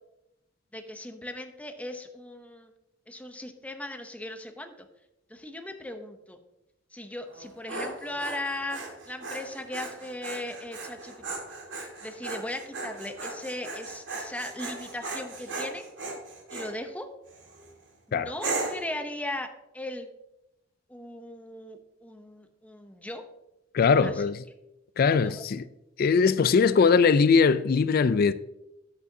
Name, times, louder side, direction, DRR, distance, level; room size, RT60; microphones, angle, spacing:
voice 1, 0.7-2.7 3.1-4.9 5.3-6.4 6.9-11.4 11.8-15.8 16.5-17.1 18.1-20.1 20.9-23.2 24.0-24.1, left 1 dB, 10° left, 0.7 m, -38 dB
Dog, 7.3-16.7 17.3-17.7 18.4-18.9, right 3 dB, 85° right, 1.9 m, -37 dB
voice 2, 23.7-24.4 25.0-25.7 26.0-28.3, left 5 dB, 50° left, 0.3 m, -21 dB
11.0 x 8.2 x 2.7 m
head